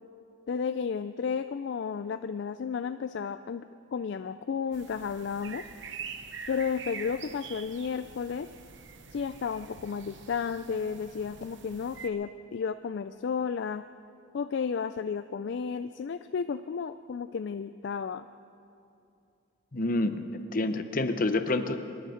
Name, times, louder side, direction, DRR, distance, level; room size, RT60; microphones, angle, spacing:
voice 1, 0.5-3.7 3.9-5.7 6.5-8.5 9.1-13.9 14.3-18.3, left 6 dB, 55° left, 10 dB, 0.3 m, -32 dB
sound 1, 4.7-12.1, right 6 dB, 60° right, 0.9 m, -45 dB
voice 2, 19.7-21.8, left 2 dB, 40° left, 9 dB, 0.8 m, -28 dB
24.0 x 11.0 x 5.1 m, 2.7 s
head